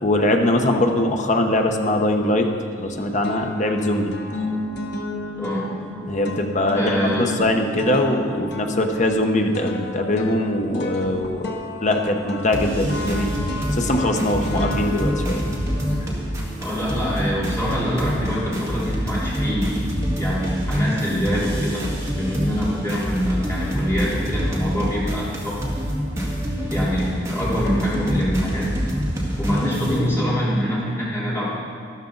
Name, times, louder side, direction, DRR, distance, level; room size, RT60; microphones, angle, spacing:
voice 1, 0.0-2.5 2.8-4.1 6.0-13.4 13.7-15.4, left 1 dB, 40° left, 4 dB, 0.9 m, -22 dB
sound 1, 2.4-2.9 3.2-16.6, left 2 dB, 60° left, 1.2 m, -33 dB
voice 2, 5.3-5.7 6.7-7.3 14.5-14.7 16.6-19.9 20.2-21.9 22.2-25.7 26.7-28.7 29.4-31.5, equal, 15° left, -9 dB, 3.6 m, -25 dB
sound 2, 12.5-30.0, equal, 15° right, 1.9 m, -26 dB
13.0 x 12.5 x 3.9 m, 2.2 s
head